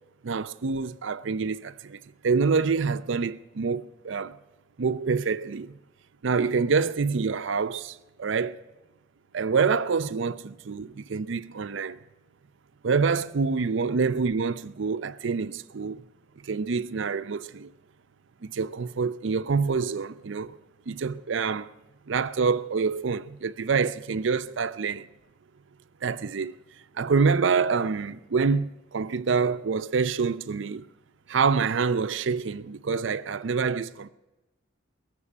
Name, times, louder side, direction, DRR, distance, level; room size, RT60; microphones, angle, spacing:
voice 1, 0.2-2.0 2.2-4.4 4.8-5.8 6.2-8.6 9.3-12.0 12.8-16.0 16.4-17.7 18.4-20.5 20.9-21.7 22.1-25.1 26.0-26.5 26.9-30.9 31.3-34.1, right 5 dB, 65° right, 0.5 m, -26 dB
18.5 x 7.5 x 9.7 m
head